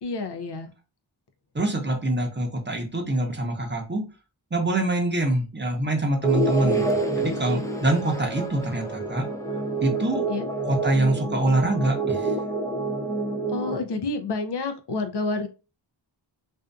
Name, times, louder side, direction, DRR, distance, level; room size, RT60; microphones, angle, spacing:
voice 1, 0.0-0.7 10.3-10.5 13.5-15.5, left 3 dB, 60° left, 6 dB, 0.5 m, -29 dB
voice 2, 1.5-4.0 4.5-9.2 9.8-10.2 10.7-12.3, right 1 dB, 25° right, 2 dB, 0.7 m, -25 dB
sound 1, 6.2-13.8, right 3 dB, 10° left, 0.4 m, -27 dB
2.6 x 2.4 x 2.2 m, 0.32 s
cardioid pair, 45°, 46 cm